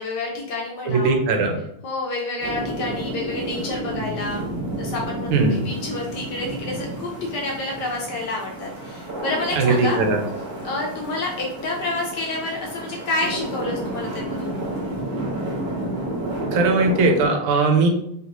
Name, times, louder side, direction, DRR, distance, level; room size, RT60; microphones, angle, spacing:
voice 1, 0.0-1.1 1.8-4.5 4.8-5.3 5.6-10.0 10.6-14.6, left 2 dB, 75° left, -2 dB, 1.0 m, -29 dB
voice 2, 0.8-1.6 5.3-5.6 9.5-10.2 16.5-17.9, right 3 dB, 85° right, 3 dB, 1.5 m, -19 dB
sound 1, 2.4-17.3, right 1 dB, 35° right, 0.8 m, -31 dB
3.5 x 2.5 x 2.9 m, 0.75 s
omnidirectional pair, 2.3 m